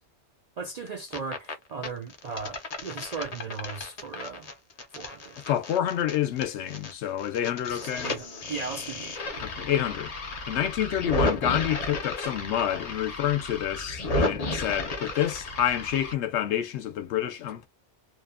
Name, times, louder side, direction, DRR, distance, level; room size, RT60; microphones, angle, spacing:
voice 1, 0.6-4.5 4.9-5.4 7.7-9.5, right 4 dB, 65° right, 0.4 m, -37 dB
sound 1, 0.9-1.5 1.8-6.9 7.2-16.1, left 2 dB, 45° left, 0.6 m, -33 dB
voice 2, 5.5-8.1 9.4-10.1 10.5-17.7, left 10 dB, 75° left, 0.9 m, -28 dB
2.7 x 2.1 x 2.3 m
omnidirectional pair, 1.2 m